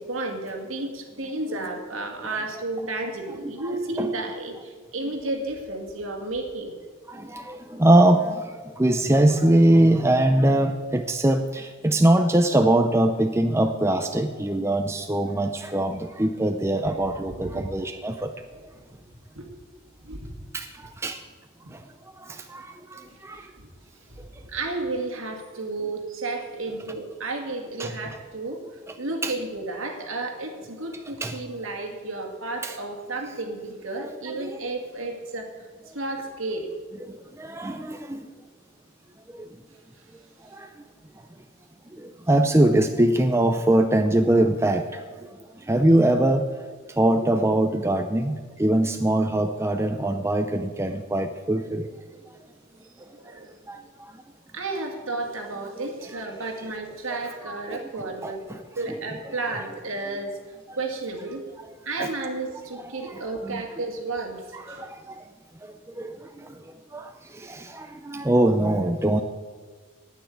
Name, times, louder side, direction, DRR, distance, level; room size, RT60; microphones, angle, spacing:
voice 1, 0.0-6.7 17.4-17.6 19.4-19.5 20.0-20.5 21.6-21.7 23.1-23.7 24.1-28.6 29.0-35.5 35.9-36.7 53.1-53.6 54.5-58.4 58.8-60.4 60.8-61.4 61.9-64.9, right 2 dB, 70° right, 2 dB, 2.1 m, -32 dB
voice 2, 3.4-4.1 7.1-8.5 8.8-18.3 20.5-20.7 21.0-21.2 22.3-23.4 27.8-27.9 29.2-29.3 31.2-31.4 32.6-32.7 34.0-34.1 34.4-34.5 37.0-38.3 39.3-39.5 40.6-40.7 42.0-45.0 45.7-46.4 47.0-51.9 53.7-53.8 57.4-57.8 58.2-58.6 59.5-59.7 62.0-62.1 63.0-63.6 64.5-64.9 66.0-66.2 66.9-69.2, right 1 dB, 10° right, 6 dB, 0.5 m, -22 dB
9.4 x 9.4 x 8.4 m, 1.5 s
head